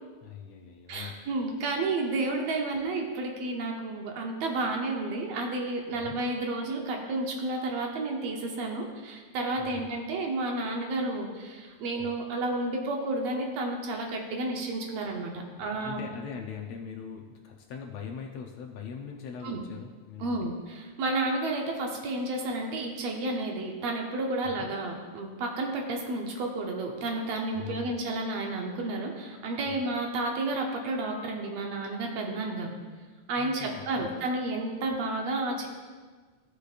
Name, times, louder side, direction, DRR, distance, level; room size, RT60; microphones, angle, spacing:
voice 1, 0.2-1.2 5.9-6.2 9.6-9.9 12.0-12.1 15.6-20.4 24.4-24.7 27.5-28.0 29.7-29.9 33.4-34.2, left 6 dB, 75° left, 2 dB, 1.7 m, -42 dB
voice 2, 0.9-16.0 19.4-19.7 20.2-32.7 33.3-35.7, right 2 dB, 70° right, 1 dB, 2.0 m, -31 dB
15.0 x 6.6 x 2.5 m, 1.4 s
omnidirectional pair, 3.3 m